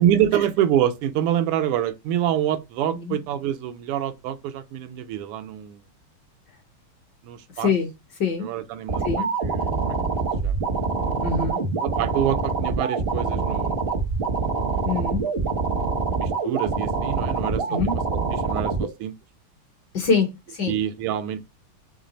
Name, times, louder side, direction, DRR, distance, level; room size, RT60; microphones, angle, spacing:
voice 1, 0.0-5.8 7.2-7.7 8.4-10.0 10.4-10.5 11.8-13.9 16.1-17.6 18.1-18.2 18.4-19.1 20.7-21.4, right 11 dB, 85° right, 1.6 m, -26 dB
voice 2, 7.6-7.9 8.2-8.5 9.0-9.3 11.2-11.6 14.8-15.2 17.7-17.9 19.9-20.7, left 5 dB, 65° left, 1.2 m, -24 dB
sound 1, 8.9-18.9, right 4 dB, 55° right, 0.7 m, -25 dB
3.8 x 3.2 x 4.0 m
omnidirectional pair, 2.4 m